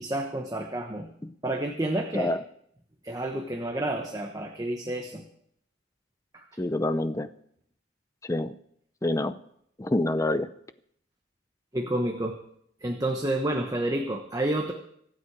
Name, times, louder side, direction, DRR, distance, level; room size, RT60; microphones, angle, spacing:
voice 1, 0.0-1.1 1.4-2.3 3.0-5.2 6.3-6.5 11.7-12.4 12.8-14.7, right 1 dB, 20° right, 3 dB, 1.1 m, -29 dB
voice 2, 6.6-7.3 8.2-8.5 9.0-9.4 9.8-10.5, left 1 dB, 15° left, 13 dB, 0.5 m, -27 dB
25.0 x 8.5 x 4.7 m, 0.69 s
head